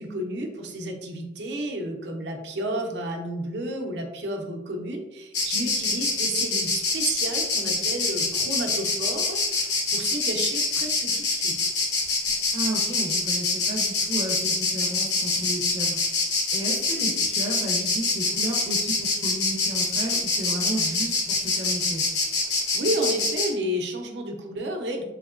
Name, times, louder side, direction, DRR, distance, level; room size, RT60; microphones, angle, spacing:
voice 1, 0.0-9.7 9.9-11.5 22.5-25.0, right 1 dB, 80° right, 1 dB, 0.6 m, -31 dB
Insect, 5.3-23.5, left 3 dB, 80° left, 1.0 m, -25 dB
voice 2, 12.5-16.0 16.5-22.0, right 1 dB, 30° right, -2 dB, 0.5 m, -33 dB
3.6 x 3.2 x 2.4 m, 0.96 s
head